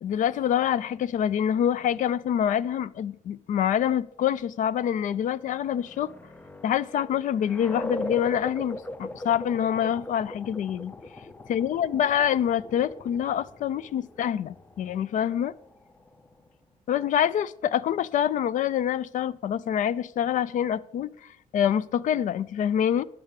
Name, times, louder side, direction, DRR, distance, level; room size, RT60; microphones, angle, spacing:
voice 1, 0.0-6.1 6.6-10.9 11.5-15.5 16.9-21.1 21.5-23.1, left 9 dB, 60° left, 0.5 m, -26 dB
sound 1, 5.1-16.5, left 1 dB, 10° left, 0.6 m, -40 dB
10.5 x 7.4 x 6.5 m
cardioid pair, 140°, 15 cm